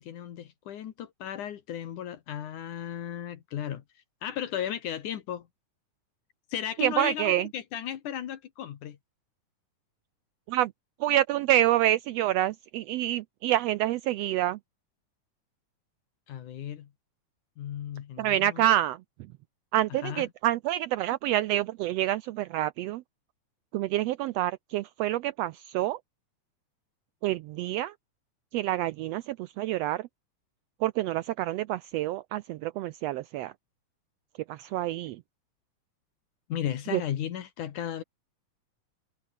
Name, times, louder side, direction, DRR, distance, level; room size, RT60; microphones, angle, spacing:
voice 1, 0.0-5.5 6.5-9.0 16.3-16.9 17.6-18.6 19.9-20.3 36.5-38.0, left 10 dB, 80° left, 3.1 m, -35 dB
voice 2, 6.8-7.5 10.5-10.7 11.0-14.6 18.2-19.0 19.7-23.0 23.7-26.0 27.2-27.9 28.5-30.1 30.8-33.5 34.5-35.2 36.9-37.0, right 13 dB, 90° right, 1.4 m, -27 dB
omnidirectional pair, 3.5 m